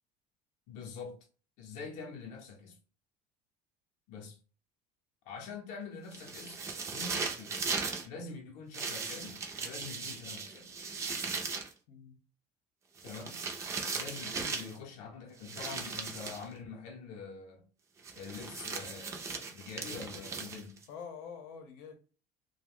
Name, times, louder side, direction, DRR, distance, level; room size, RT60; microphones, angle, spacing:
voice 1, 0.7-1.3 1.6-2.8 4.1-4.4 5.3-6.6 6.9-7.6 8.0-10.7 13.0-13.4 14.0-17.7 18.1-20.8, left 5 dB, 50° left, 0.6 m, -45 dB
sound 1, 6.1-8.1 8.7-11.7 13.0-14.8 15.4-16.5 18.0-20.8, right 4 dB, 15° right, 0.3 m, -38 dB
voice 2, 11.9-12.2 20.9-22.0, left 6 dB, 80° left, 0.7 m, -46 dB
2.5 x 2.1 x 3.5 m
cardioid pair, 180°, 17 cm